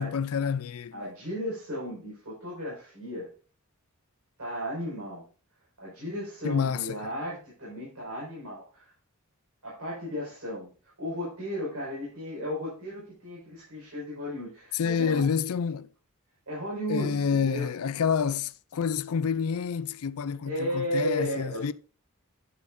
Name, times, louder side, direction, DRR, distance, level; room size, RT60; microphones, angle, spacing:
voice 1, 0.0-1.0 6.4-7.0 14.7-15.9 16.9-21.7, left 6 dB, 70° left, 0.4 m, -28 dB
voice 2, 0.9-3.3 4.4-5.2 5.8-8.9 9.6-10.7 11.0-15.2 16.5-17.7 20.4-21.7, equal, 75° right, 5.4 m, -34 dB
10.5 x 8.4 x 2.6 m
head